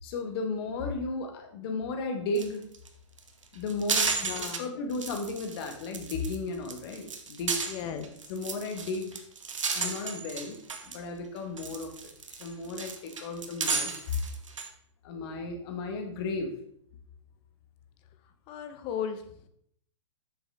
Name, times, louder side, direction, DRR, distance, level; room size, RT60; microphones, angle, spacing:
voice 1, 0.0-2.6 3.5-7.6 8.3-9.2 9.7-10.6 10.8-12.1 12.4-14.2 15.0-16.5, left 3 dB, 50° left, 3 dB, 1.7 m, -34 dB
sound 1, 2.3-2.5 2.7-2.9 3.2-4.6 4.9-6.3 6.6-11.0 11.4-14.7, right 5 dB, 90° right, 1.2 m, -33 dB
voice 2, 4.2-4.7 7.7-8.1 9.7-9.9 18.5-19.2, left 8 dB, 35° left, 9 dB, 0.9 m, -36 dB
7.1 x 6.9 x 3.6 m, 0.67 s
hypercardioid pair, 125°, 16 cm